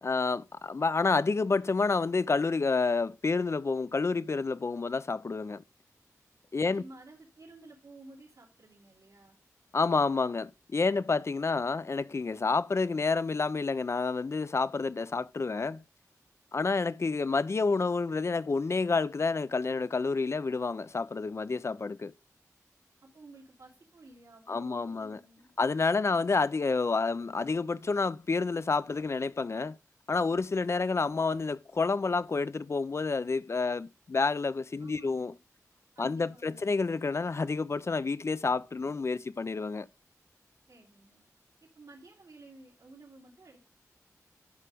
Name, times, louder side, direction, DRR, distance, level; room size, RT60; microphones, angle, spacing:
voice 1, 0.0-5.6 6.5-6.8 9.7-15.8 16.5-22.1 24.5-25.2 25.6-29.8 30.1-35.3 36.0-39.9, left 4 dB, 50° left, 0.4 m, -29 dB
voice 2, 6.6-9.4 23.0-25.5 34.8-35.4 35.9-36.8 40.7-41.2 41.6-43.6, right 2 dB, 85° right, 2.8 m, -53 dB
11.0 x 5.1 x 3.4 m
wide cardioid pair, 80°, 6 cm